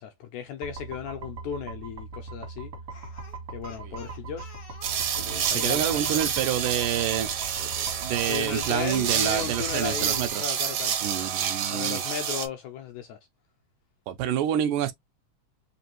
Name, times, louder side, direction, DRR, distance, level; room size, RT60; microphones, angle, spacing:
voice 1, 0.0-2.7 3.5-4.5 5.4-6.2 8.3-10.9 11.7-13.2, left 8 dB, 85° left, 1.7 m, -35 dB
sound 1, 0.6-10.3, right 3 dB, 50° right, 0.9 m, -40 dB
Speech, 2.9-7.2 9.2-9.7 10.1-11.0, left 4 dB, 65° left, 0.9 m, -50 dB
sound 2, 4.8-12.5, right 8 dB, 70° right, 1.5 m, -29 dB
voice 2, 5.5-7.3 7.6-10.6 11.0-12.0 14.1-14.9, right 10 dB, 85° right, 2.2 m, -28 dB
5.2 x 2.6 x 2.9 m
omnidirectional pair, 3.8 m